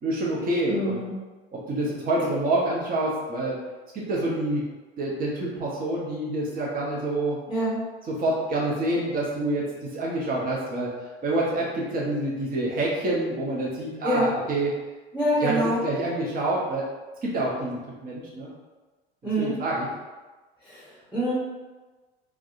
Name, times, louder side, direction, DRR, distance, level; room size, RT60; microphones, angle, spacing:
voice 1, 0.0-1.0 1.5-3.6 3.9-4.6 5.0-7.4 8.1-10.9 11.2-14.7 15.4-16.9 17.2-18.5 19.4-19.9, right 2 dB, 30° right, -4 dB, 0.9 m, -27 dB
voice 2, 0.7-1.2 7.5-7.8 14.0-14.3 15.1-15.8 19.2-19.6 20.6-21.3, equal, 5° right, -9 dB, 1.0 m, -25 dB
3.5 x 2.2 x 2.5 m, 1.2 s
hypercardioid pair, 80°, 30 cm